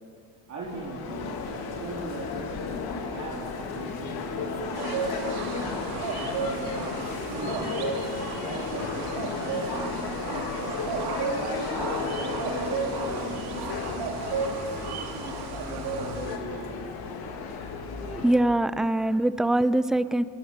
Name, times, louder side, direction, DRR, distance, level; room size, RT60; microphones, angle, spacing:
voice 1, 0.5-5.4 5.9-7.8 8.3-14.3 14.8-16.8, right 2 dB, 45° right, -4 dB, 4.2 m, -39 dB
sound 1, 0.6-18.4, left 4 dB, 70° left, 3.6 m, -34 dB
sound 2, 4.7-16.4, right 5 dB, 70° right, 2.8 m, -34 dB
voice 2, 18.0-20.2, right 1 dB, ahead, 15 dB, 0.5 m, -23 dB
26.0 x 22.5 x 7.5 m, 2.5 s
cardioid pair, 140°, 40 cm